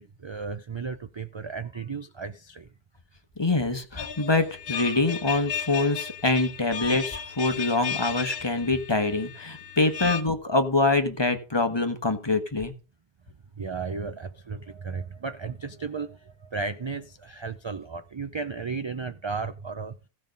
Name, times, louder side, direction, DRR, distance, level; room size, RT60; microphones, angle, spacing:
voice 1, 0.0-2.7 13.6-19.9, right 4 dB, 40° right, 0.4 m, -34 dB
voice 2, 3.4-12.7, left 2 dB, 25° left, 1.1 m, -25 dB
sound 1, 4.0-10.2, left 8 dB, 65° left, 1.1 m, -35 dB
16.0 x 5.4 x 5.2 m
omnidirectional pair, 1.1 m